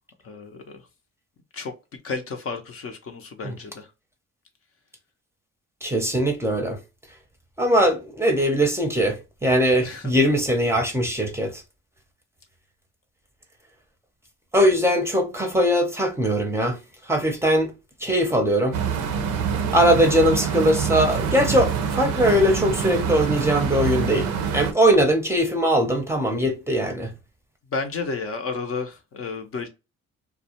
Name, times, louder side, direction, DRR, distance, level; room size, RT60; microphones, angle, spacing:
voice 1, 0.2-0.8 1.5-1.7 2.0-3.9 9.8-10.1 27.7-29.7, left 4 dB, 50° left, 0.6 m, -32 dB
voice 2, 5.8-6.8 7.6-11.5 14.5-16.8 17.1-17.7 18.0-18.8 19.7-27.1, equal, 10° right, 0.6 m, -21 dB
sound 1, 18.7-24.7, right 7 dB, 90° right, 0.6 m, -26 dB
2.3 x 2.1 x 2.8 m
cardioid pair, 90°, 30 cm